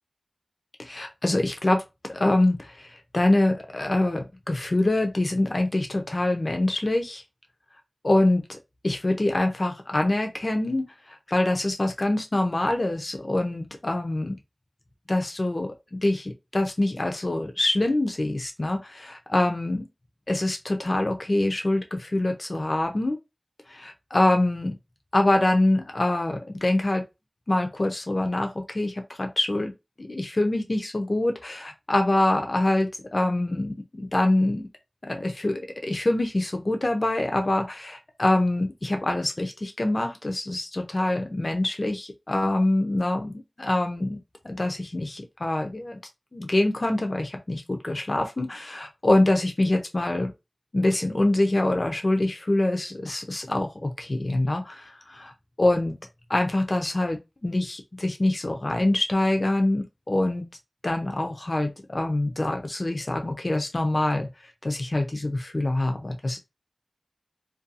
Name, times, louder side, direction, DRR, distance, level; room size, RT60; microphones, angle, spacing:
voice 1, 0.8-1.8 2.1-7.2 8.0-8.4 8.8-14.4 15.1-19.8 20.3-23.2 23.7-24.7 25.1-27.0 27.5-34.7 35.0-44.2 44.4-46.0 46.3-50.3 50.7-55.3 55.6-56.0 56.3-60.4 60.8-64.3 64.6-66.4, left 1 dB, 60° left, 0.4 m, -25 dB
2.5 x 2.2 x 2.6 m
wide cardioid pair, 55°, 0 cm